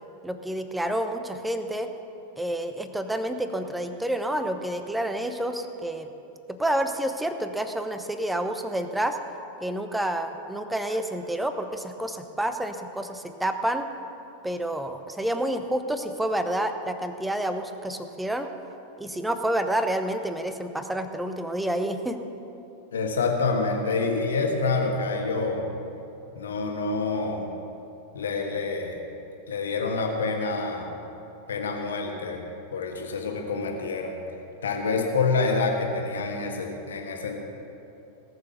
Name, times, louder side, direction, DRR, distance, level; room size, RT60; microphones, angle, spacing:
voice 1, 0.2-1.9 2.4-6.1 6.6-9.2 9.6-13.9 14.4-18.5 19.0-22.2, right 1 dB, 5° right, 7 dB, 0.8 m, -29 dB
voice 2, 22.9-25.6 26.3-27.5 28.1-29.0 29.5-30.9 31.5-32.4 32.7-34.2 34.6-37.4, left 4 dB, 65° left, 2 dB, 1.5 m, -27 dB
18.5 x 6.9 x 6.8 m, 2.8 s
figure-of-eight pair, 90°, 0 cm